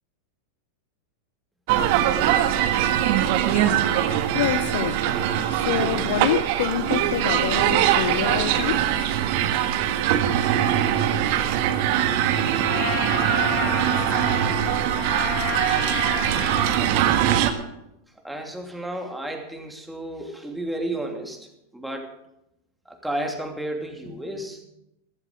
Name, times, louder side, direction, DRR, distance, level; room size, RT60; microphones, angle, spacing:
sound 1, 1.7-17.5, right 11 dB, 50° right, 1.4 m, -22 dB
voice 1, 3.5-3.8 4.3-5.0 5.5-8.9, left 12 dB, 60° left, 0.6 m, -27 dB
Trumpet, 12.7-17.0, left 4 dB, 45° left, 6.0 m, -30 dB
voice 2, 18.2-22.1 22.8-24.7, right 1 dB, 5° right, 2.8 m, -32 dB
14.5 x 12.5 x 5.1 m
figure-of-eight pair, 90°, 0 cm